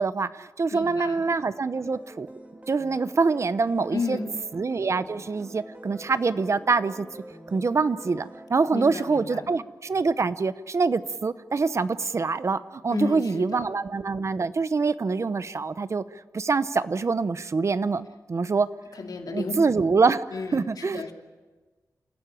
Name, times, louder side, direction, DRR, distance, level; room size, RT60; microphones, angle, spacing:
voice 1, 0.0-2.3 2.7-4.2 4.5-7.1 7.5-16.0 16.3-18.7 19.3-20.2 20.5-21.0, right 4 dB, 50° right, 14 dB, 0.8 m, -25 dB
voice 2, 0.7-1.3 3.9-4.4 8.7-9.5 12.9-13.8 18.9-19.6 20.3-21.1, left 4 dB, 75° left, 4 dB, 2.6 m, -33 dB
sound 1, 1.7-8.5, right 1 dB, 20° right, 2.2 m, -45 dB
28.0 x 15.0 x 9.0 m, 1.3 s
wide cardioid pair, 140°, 6 cm